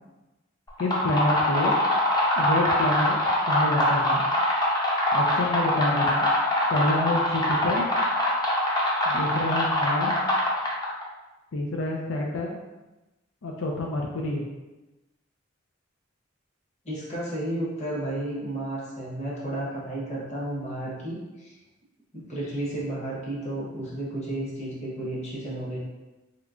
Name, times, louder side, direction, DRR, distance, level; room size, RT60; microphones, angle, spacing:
sound 1, 0.7-11.0, left 1 dB, 20° left, 0.6 m, -24 dB
voice 1, 0.8-1.7 2.4-3.2 3.5-4.2 5.1-6.3 6.7-7.8 9.1-10.1 11.5-12.6 13.4-14.4, left 1 dB, 85° left, -1 dB, 0.5 m, -28 dB
voice 2, 16.8-21.5 22.1-25.8, right 1 dB, 35° left, -6 dB, 1.0 m, -32 dB
3.2 x 3.0 x 2.5 m, 1.1 s
head